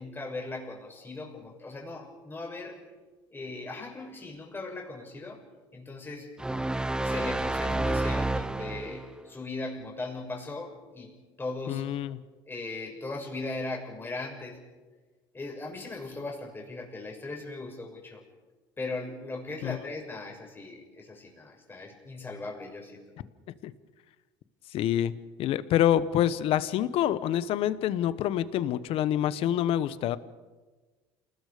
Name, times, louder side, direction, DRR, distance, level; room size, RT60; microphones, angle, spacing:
voice 1, 0.0-2.8 3.3-5.4 5.7-6.4 7.0-11.8 12.4-14.6 15.3-18.2 18.8-23.0, left 2 dB, 20° left, 0 dB, 6.4 m, -38 dB
sound 1, 6.4-9.2, right 2 dB, 5° right, 0.8 m, -29 dB
voice 2, 11.7-12.2 19.6-19.8 23.6-23.7 24.7-25.1 25.4-30.2, left 11 dB, 60° left, 16 dB, 1.1 m, -26 dB
28.5 x 20.0 x 5.1 m, 1.3 s
supercardioid pair, 80°, 11 cm